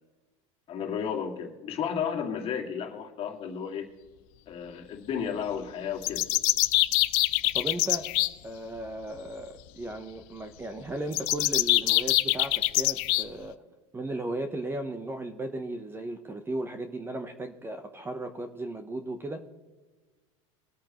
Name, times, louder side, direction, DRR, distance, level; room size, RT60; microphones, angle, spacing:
voice 1, 0.7-3.9 4.5-6.3, left 7 dB, 35° left, 1 dB, 2.3 m, -33 dB
sound 1, 6.0-8.3 11.1-13.3, left 21 dB, 60° left, 0.5 m, -24 dB
voice 2, 7.5-8.1 8.4-13.6 13.9-19.4, right 1 dB, 15° right, 7 dB, 1.0 m, -36 dB
22.5 x 8.6 x 3.1 m, 1.3 s
supercardioid pair, 120°, 16 cm